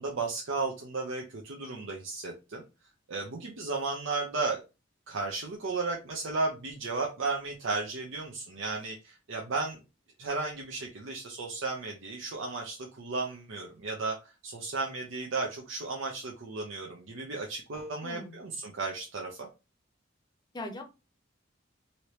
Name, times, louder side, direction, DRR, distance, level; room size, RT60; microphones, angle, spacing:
voice 1, 0.0-2.6 3.1-4.6 5.1-9.8 10.2-19.5, right 3 dB, 75° right, 0 dB, 0.7 m, -34 dB
voice 2, 18.0-18.4 20.5-20.8, left 1 dB, 20° left, 5 dB, 0.7 m, -40 dB
3.0 x 2.8 x 3.2 m, 0.28 s
head